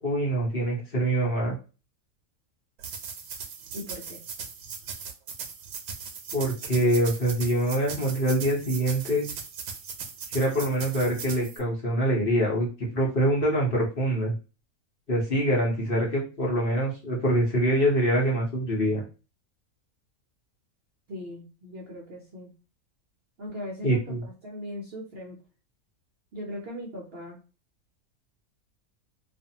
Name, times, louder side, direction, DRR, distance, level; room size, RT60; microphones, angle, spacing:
voice 1, 0.0-1.6 6.3-9.2 10.3-14.3 15.1-19.0 23.8-24.2, right 1 dB, 45° left, -4 dB, 1.0 m, -25 dB
sound 1, 2.8-11.6, right 6 dB, 85° right, 1.1 m, -39 dB
voice 2, 3.7-4.2 21.1-22.5 23.4-25.4 26.3-27.4, equal, 55° right, -1 dB, 0.7 m, -39 dB
2.5 x 2.5 x 2.7 m, 0.33 s
omnidirectional pair, 1.5 m